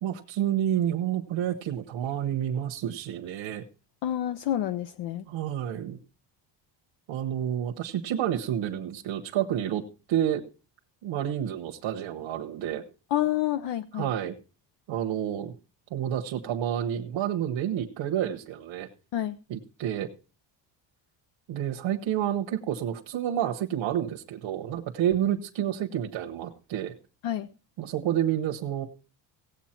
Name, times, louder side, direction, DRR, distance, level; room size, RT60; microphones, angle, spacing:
voice 1, 0.0-3.6 5.3-6.0 7.1-9.8 10.1-10.4 11.0-12.8 13.9-14.3 14.9-15.5 15.9-18.9 19.5-20.1 21.5-26.9 27.8-28.9, right 10 dB, 65° right, 1.1 m, -29 dB
voice 2, 4.0-5.2 13.1-14.1 19.1-19.4 27.2-27.5, left 12 dB, 65° left, 0.7 m, -28 dB
16.5 x 8.2 x 4.4 m
cardioid pair, 165°, 46 cm